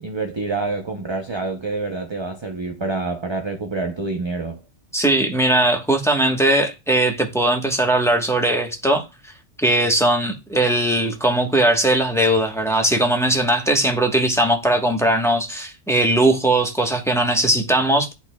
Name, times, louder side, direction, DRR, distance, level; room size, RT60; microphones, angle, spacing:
voice 1, 0.0-4.6, right 3 dB, 30° right, 0.5 m, -27 dB
voice 2, 4.9-9.0 9.6-18.1, right 1 dB, 5° left, 1.0 m, -19 dB
11.5 x 4.1 x 2.2 m
omnidirectional pair, 1.2 m